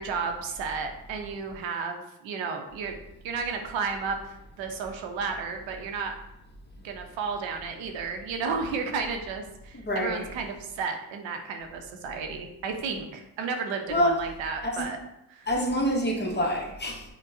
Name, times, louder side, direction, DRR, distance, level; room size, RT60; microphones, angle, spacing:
voice 1, 0.0-3.0 3.2-6.1 6.8-15.0 15.3-15.5, right 5 dB, 80° right, 4 dB, 0.7 m, -33 dB
voice 2, 9.7-10.3 13.9-14.2 14.6-14.8 15.5-17.0, equal, 25° left, -1 dB, 0.9 m, -26 dB
5.6 x 2.2 x 2.6 m, 0.84 s
supercardioid pair, 70°, 45 cm